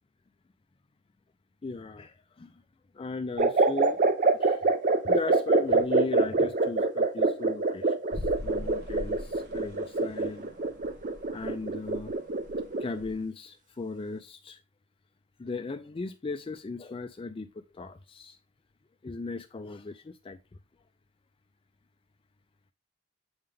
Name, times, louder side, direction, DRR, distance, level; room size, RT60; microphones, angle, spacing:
voice 1, 1.6-2.6 2.9-4.0 4.4-4.6 5.0-10.7 11.3-12.2 12.8-14.6 15.4-18.4 19.0-20.4, left 3 dB, 25° left, 0.4 m, -37 dB
sound 1, 3.4-13.0, right 3 dB, 40° right, 0.7 m, -25 dB
sound 2, 8.1-13.2, left 1 dB, 55° right, 1.4 m, -43 dB
7.8 x 3.7 x 3.4 m
head